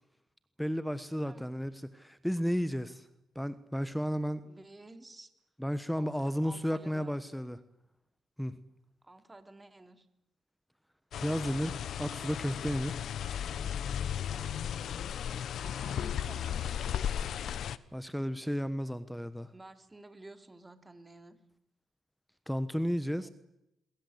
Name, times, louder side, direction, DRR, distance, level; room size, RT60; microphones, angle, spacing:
voice 1, 0.6-3.1 3.3-4.4 5.6-7.6 8.4-8.6 11.1-13.0 17.9-19.5 22.5-23.3, equal, ahead, 1.3 m, -33 dB
voice 2, 4.4-5.3 6.0-7.2 9.0-10.1 14.3-14.6 15.6-16.8 19.5-21.4 22.8-23.3, right 2 dB, 15° right, 3.2 m, -52 dB
sound 1, 11.1-17.8, left 9 dB, 65° left, 1.1 m, -35 dB
29.0 x 22.5 x 8.1 m
cardioid pair, 90°, 0 cm